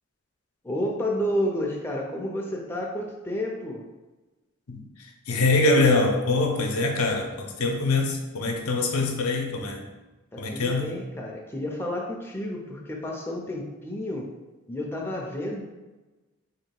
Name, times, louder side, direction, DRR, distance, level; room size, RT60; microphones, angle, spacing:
voice 1, 0.6-3.8 10.3-14.3 14.7-15.6, left 1 dB, 10° left, -1 dB, 0.4 m, -30 dB
voice 2, 4.7-9.8 10.4-11.0, left 3 dB, 85° left, 2 dB, 0.7 m, -24 dB
3.0 x 2.9 x 4.4 m, 1.1 s
head